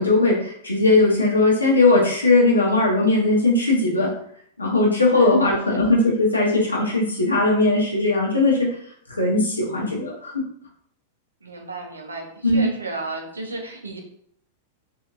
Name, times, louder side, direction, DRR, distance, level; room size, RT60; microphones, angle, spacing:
voice 1, 0.0-4.1 4.6-8.7 9.1-10.4 12.4-12.7, left 2 dB, 90° left, -2 dB, 1.2 m, -19 dB
voice 2, 5.1-5.8 11.4-14.0, right 2 dB, 85° right, 2 dB, 0.8 m, -33 dB
4.0 x 3.1 x 2.5 m, 0.64 s
hypercardioid pair, 100°, 0 cm